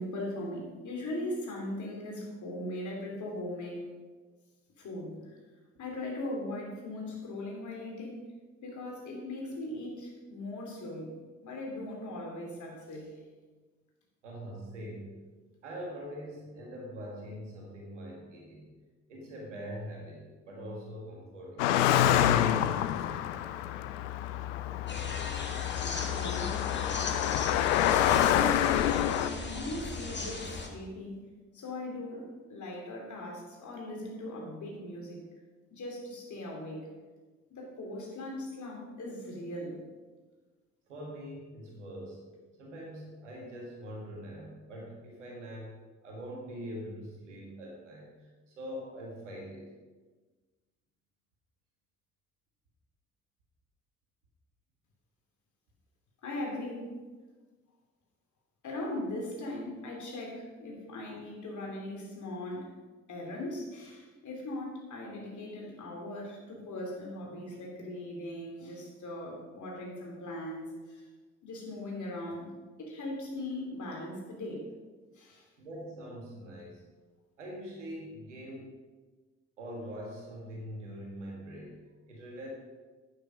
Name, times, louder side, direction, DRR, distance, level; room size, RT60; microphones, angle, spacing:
voice 1, 0.0-3.8 4.8-5.4 5.8-8.2 8.6-11.2 11.4-13.2 25.8-31.2 31.5-35.2 35.7-36.9 37.5-39.8 56.2-56.9 58.6-62.7 63.1-71.1 71.4-72.5 72.8-74.6 75.1-75.5, left 1 dB, 55° left, -1 dB, 3.3 m, -39 dB
voice 2, 14.2-15.2 15.6-18.7 19.1-21.7 40.9-42.2 42.6-49.7 75.6-76.8 77.4-78.7 79.6-82.5, equal, 90° right, -2 dB, 1.9 m, -43 dB
Car passing by, 21.6-29.3, left 11 dB, 80° left, 0.5 m, -27 dB
sound 1, 24.9-30.7, left 3 dB, 30° left, 1.9 m, -38 dB
9.0 x 8.9 x 5.2 m, 1.3 s
hypercardioid pair, 45°, 35 cm